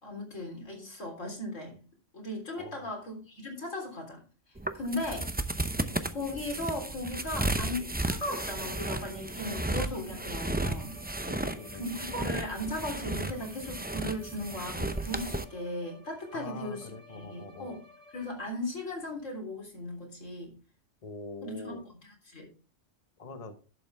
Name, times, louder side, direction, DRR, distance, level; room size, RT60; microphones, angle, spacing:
voice 1, 0.0-1.8 2.1-4.2 4.7-5.3 6.1-11.0 11.7-17.8 18.1-20.5 21.4-21.7 22.0-22.5, left 1 dB, 85° left, 2 dB, 3.9 m, -37 dB
voice 2, 2.6-2.9 11.3-11.9 16.3-17.8 21.0-21.8 23.2-23.5, left 3 dB, 30° left, 8 dB, 1.0 m, -43 dB
sound 1, 4.6-15.4, right 2 dB, 10° right, 0.4 m, -34 dB
Bowed string instrument, 10.4-18.6, left 1 dB, 60° right, 3.2 m, -55 dB
11.0 x 8.0 x 3.4 m, 0.36 s
omnidirectional pair, 1.3 m